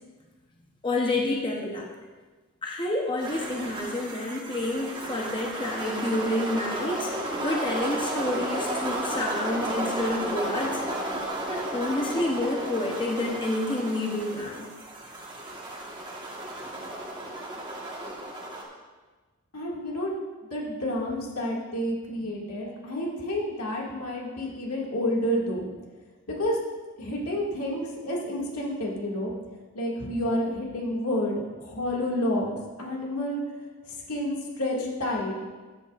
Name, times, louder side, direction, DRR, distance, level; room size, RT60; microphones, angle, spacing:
voice 1, 0.8-1.9 2.6-7.1 7.4-10.8 11.5-14.7, left 2 dB, 20° left, 0 dB, 0.8 m, -29 dB
sound 1, 3.2-18.6, right 1 dB, 20° right, 1.3 m, -33 dB
voice 2, 19.5-20.1 20.4-25.6 26.3-26.6 27.0-29.3 29.7-32.5 32.8-33.4 34.1-35.3, left 1 dB, 90° left, -3 dB, 2.0 m, -29 dB
14.0 x 8.1 x 2.4 m, 1.3 s
head